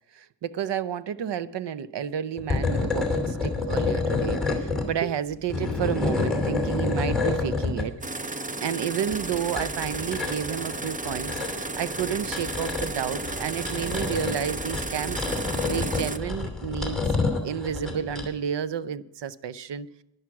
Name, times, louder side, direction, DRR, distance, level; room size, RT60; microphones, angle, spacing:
voice 1, 0.1-8.3 8.6-17.0 17.4-19.9, right 8 dB, 65° right, 0.7 m, -31 dB
sound 1, 2.4-4.9 5.3-7.8 9.1-18.3, left 3 dB, ahead, 2.7 m, -28 dB
sound 2, 8.0-16.2, right 3 dB, 20° right, 0.5 m, -33 dB
13.5 x 11.0 x 4.7 m
wide cardioid pair, 160°, 45 cm